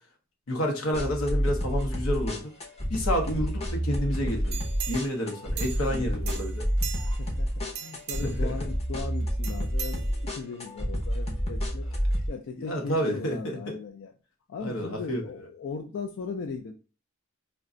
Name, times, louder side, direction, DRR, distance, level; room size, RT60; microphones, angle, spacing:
voice 1, 0.5-2.5 2.9-4.6 4.9-6.7 8.2-8.5 12.6-13.7 14.6-15.2, equal, 80° left, 2 dB, 0.8 m, -29 dB
sound 1, 0.9-12.3, equal, 30° left, 0.7 m, -29 dB
sound 2, 4.5-6.0 6.3-7.3 7.7-8.5 9.4-10.5 11.0-11.1, right 8 dB, 50° right, 0.4 m, -39 dB
voice 2, 5.9-6.4 7.0-11.9 12.3-14.1 14.5-16.7, left 5 dB, 60° left, 4 dB, 0.3 m, -38 dB
2.4 x 2.2 x 3.6 m, 0.34 s
head